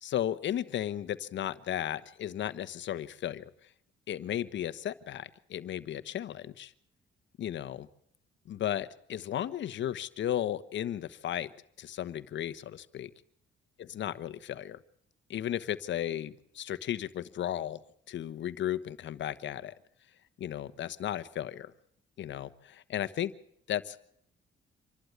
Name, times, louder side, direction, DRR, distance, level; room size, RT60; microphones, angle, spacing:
voice 1, 0.0-3.4 4.1-6.7 7.4-7.9 8.5-11.5 11.8-13.1 13.9-14.8 15.3-17.8 18.1-19.7 20.4-21.7 22.2-23.3 23.7-24.1, left 11 dB, 65° left, 13 dB, 1.1 m, -35 dB
26.5 x 12.0 x 9.4 m, 0.70 s
cardioid pair, 90°, 20 cm